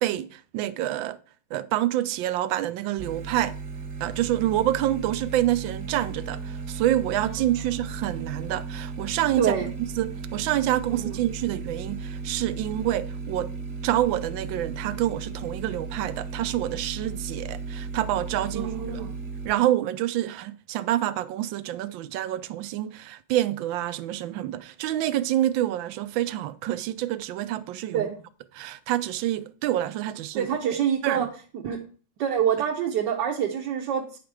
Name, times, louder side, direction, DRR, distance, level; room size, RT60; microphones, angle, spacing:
voice 1, 0.0-1.2 1.5-3.6 4.0-13.5 13.8-19.0 19.4-28.1 28.5-30.5 31.0-31.3, right 13 dB, 90° right, 1.3 m, -27 dB
sound 1, 3.0-19.5, right 4 dB, 50° right, 1.0 m, -35 dB
voice 2, 9.4-9.7 10.9-11.2 18.5-19.1 27.9-28.2 30.3-31.3 31.5-31.8 32.2-34.2, right 8 dB, 70° right, 1.4 m, -26 dB
9.4 x 5.1 x 4.6 m
omnidirectional pair, 2.0 m